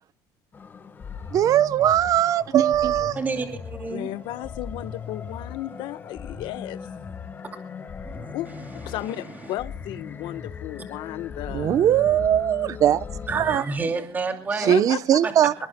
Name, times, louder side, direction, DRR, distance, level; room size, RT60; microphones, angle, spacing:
sound 1, 0.5-13.6, left 6 dB, 20° left, 1.5 m, -38 dB
voice 1, 1.3-3.2 11.5-13.0 13.3-13.6 14.6-15.5, right 11 dB, 40° right, 0.9 m, -20 dB
voice 2, 3.2-4.1 8.0-8.3 13.3-14.8 15.2-15.3, right 4 dB, 20° right, 2.6 m, -29 dB
voice 3, 3.9-6.9 8.3-8.5 8.7-11.9 14.6-15.2, left 14 dB, 65° left, 1.2 m, -34 dB
26.0 x 21.0 x 2.2 m
cardioid pair, 165°, 9 cm